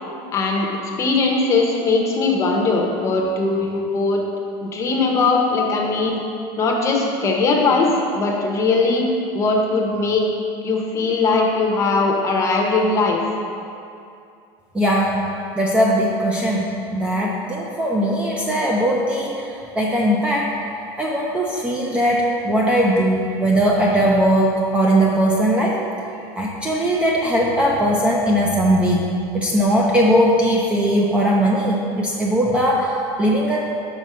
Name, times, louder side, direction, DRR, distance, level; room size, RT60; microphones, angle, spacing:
voice 1, 0.3-4.2 4.6-6.2 6.6-9.1 9.3-10.2 10.6-13.2, left 3 dB, 25° left, 0 dB, 0.7 m, -20 dB
voice 2, 14.7-15.2 15.5-20.5 21.0-25.8 26.4-29.1 29.3-33.7, equal, 10° right, -3 dB, 0.4 m, -19 dB
6.1 x 4.1 x 5.5 m, 2.5 s
cardioid pair, 165°, 12 cm